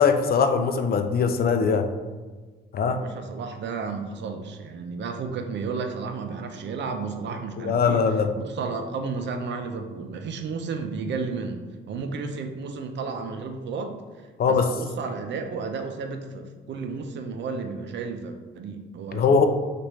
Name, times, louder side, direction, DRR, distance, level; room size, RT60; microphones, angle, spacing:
voice 1, 0.0-1.9 2.7-3.1 7.6-8.3 14.4-14.7 19.1-19.4, left 5 dB, 50° left, 7 dB, 0.5 m, -21 dB
voice 2, 2.8-8.1 8.4-19.4, right 4 dB, 65° right, 6 dB, 0.6 m, -33 dB
6.0 x 2.6 x 3.1 m, 1.3 s
cardioid pair, 90°, 20 cm